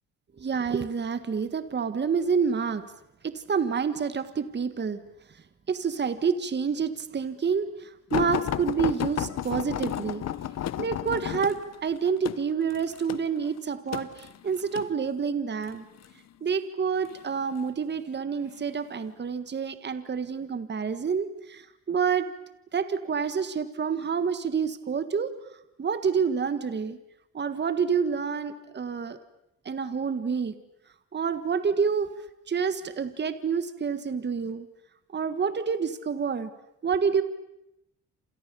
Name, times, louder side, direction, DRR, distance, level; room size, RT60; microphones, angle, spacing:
voice 1, 0.4-2.8 3.2-5.0 5.7-10.2 10.8-15.8 16.4-22.3 22.7-25.3 25.8-27.0 27.3-29.2 29.7-30.5 31.1-32.1 32.5-34.7 35.1-36.5 36.8-37.2, right 6 dB, 35° right, 11 dB, 1.7 m, -28 dB
sound 1, 8.1-14.9 15.7-16.1 17.0-17.7 18.4-18.6 19.0-19.1, left 11 dB, 60° left, 1.0 m, -32 dB
28.0 x 28.0 x 7.0 m, 0.84 s
cardioid pair, 90°, 30 cm